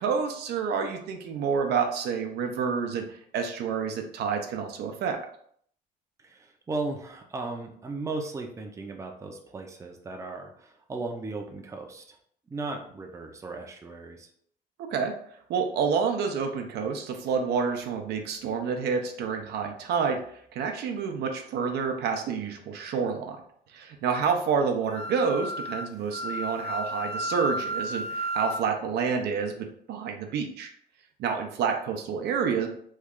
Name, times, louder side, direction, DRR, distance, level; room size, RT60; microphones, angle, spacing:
voice 1, 0.0-3.0 3.3-5.2 14.9-15.1 15.5-20.2 20.5-23.4 23.7-30.7 31.2-32.7, right 6 dB, 75° right, 4 dB, 0.6 m, -28 dB
voice 2, 6.2-12.2 12.5-14.3, right 3 dB, 20° right, 2 dB, 0.5 m, -36 dB
Wind instrument woodwind instrument, 24.9-28.6, right 1 dB, 40° left, 0.5 m, -32 dB
3.1 x 2.3 x 3.6 m, 0.64 s
cardioid pair, 110°, 17 cm